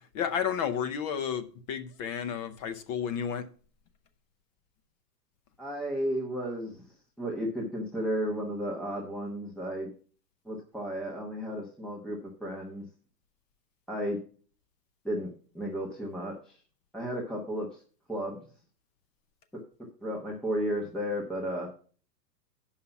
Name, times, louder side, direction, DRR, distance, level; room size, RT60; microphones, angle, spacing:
voice 1, 0.1-3.4, left 8 dB, 25° left, 0.6 m, -32 dB
voice 2, 5.6-9.9 10.4-12.9 13.9-14.2 15.0-16.6 16.9-17.8 18.1-18.4 20.0-21.7, equal, ahead, 1.0 m, -33 dB
9.4 x 5.7 x 5.8 m
hypercardioid pair, 145°, 50 cm